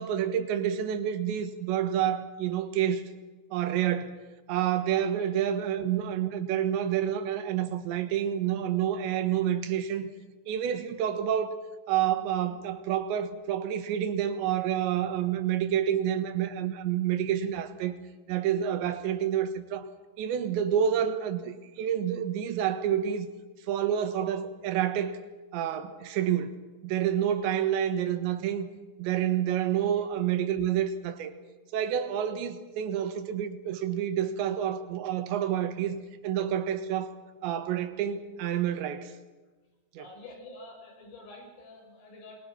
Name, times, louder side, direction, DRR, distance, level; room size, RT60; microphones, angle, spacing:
voice 1, 0.0-3.0 3.5-4.2 4.5-10.1 10.5-11.6 11.9-18.0 18.3-19.9 20.2-23.3 23.7-25.2 25.5-26.6 26.8-28.7 29.0-31.3 31.7-36.0 36.2-37.1 37.4-39.1 40.0-40.1, right 10 dB, 70° right, 3.6 m, -28 dB
voice 2, 40.0-42.3, left 2 dB, 75° left, 8.9 m, -47 dB
27.5 x 24.0 x 6.0 m
omnidirectional pair, 5.8 m